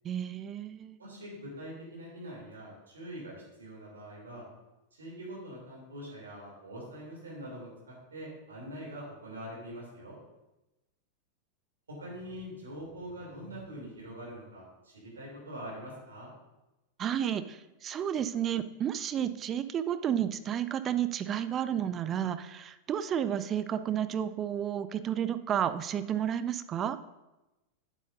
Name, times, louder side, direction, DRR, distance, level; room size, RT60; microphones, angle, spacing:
voice 1, 0.0-1.0 17.0-27.0, right 9 dB, 30° right, 12 dB, 0.4 m, -31 dB
voice 2, 1.0-4.5 4.9-10.2 11.9-16.3, equal, 70° right, -4 dB, 2.9 m, -44 dB
9.2 x 7.8 x 2.6 m, 1.0 s
figure-of-eight pair, 90°, 0 cm